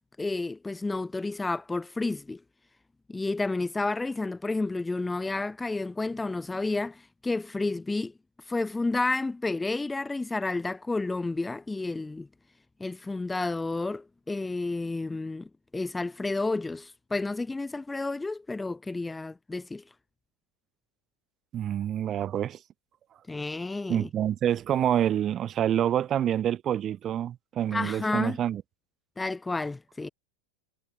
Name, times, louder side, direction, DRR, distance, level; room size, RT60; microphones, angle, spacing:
voice 1, 0.2-2.4 3.1-8.1 8.5-12.3 12.8-15.5 15.7-19.8 23.3-24.1 27.7-28.4 29.2-30.1, left 3 dB, 10° left, 4.5 m, -31 dB
voice 2, 21.5-22.6 23.9-28.6, right 10 dB, 30° right, 3.3 m, -27 dB
figure-of-eight pair, 90°, 0 cm